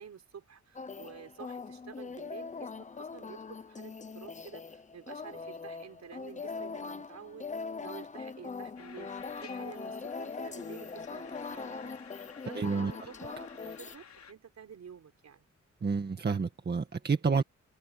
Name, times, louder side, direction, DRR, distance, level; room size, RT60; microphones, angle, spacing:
voice 1, 0.0-7.5 7.8-12.0 12.4-15.4, right 7 dB, 65° right, 5.0 m, -50 dB
sound 1, 0.7-13.9, left 4 dB, 25° left, 0.7 m, -41 dB
sound 2, 8.8-14.3, left 7 dB, 65° left, 5.8 m, -53 dB
voice 2, 12.5-12.9 15.8-17.4, right 5 dB, 35° right, 1.8 m, -29 dB
wide cardioid pair, 165°, 30 cm